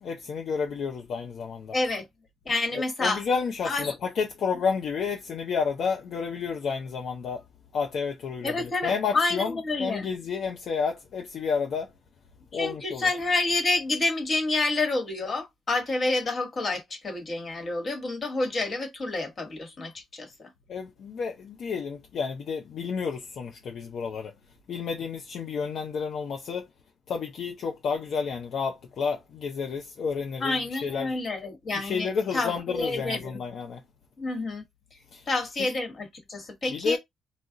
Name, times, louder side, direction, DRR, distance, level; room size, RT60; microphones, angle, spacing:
voice 1, 0.0-1.8 2.7-7.4 7.7-11.9 12.5-13.1 20.7-24.3 24.7-26.7 27.1-31.2 31.7-33.8 35.1-35.7 36.7-37.0, left 5 dB, 65° left, 0.6 m, -31 dB
voice 2, 1.7-2.1 2.4-3.2 3.6-3.9 8.4-10.1 12.5-20.5 30.4-33.4 34.2-34.6 35.3-37.0, left 3 dB, 40° left, 1.3 m, -28 dB
2.3 x 2.1 x 3.8 m
cardioid pair, 90°, 0 cm